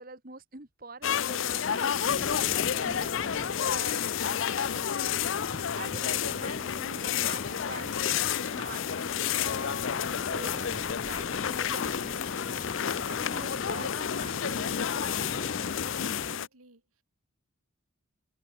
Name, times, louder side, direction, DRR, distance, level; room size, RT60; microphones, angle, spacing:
voice 1, 0.0-5.1 5.4-12.5 13.1-14.7, right 3 dB, 40° right, 2.2 m, -46 dB
sound 1, 1.0-16.5, left 8 dB, 60° left, 0.5 m, -30 dB
sound 2, 2.1-16.4, left 3 dB, 35° left, 0.8 m, -41 dB
voice 2, 15.7-17.0, right 2 dB, 90° right, 4.1 m, -56 dB
head